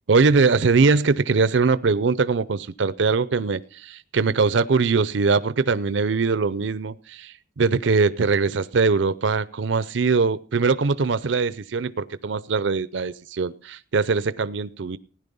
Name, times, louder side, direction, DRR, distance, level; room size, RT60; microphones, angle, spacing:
voice 1, 0.1-15.0, right 4 dB, 65° right, 17 dB, 0.5 m, -22 dB
16.0 x 10.5 x 5.4 m, 0.41 s
head